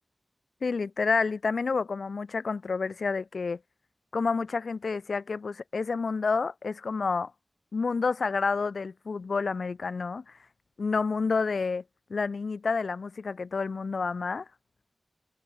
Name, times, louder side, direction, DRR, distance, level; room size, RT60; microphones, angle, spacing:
voice 1, 0.6-3.6 4.1-7.3 7.7-10.4 10.8-11.8 12.1-14.5, left 4 dB, 85° left, 3.0 m, -29 dB
wide cardioid pair, 50°, 0 cm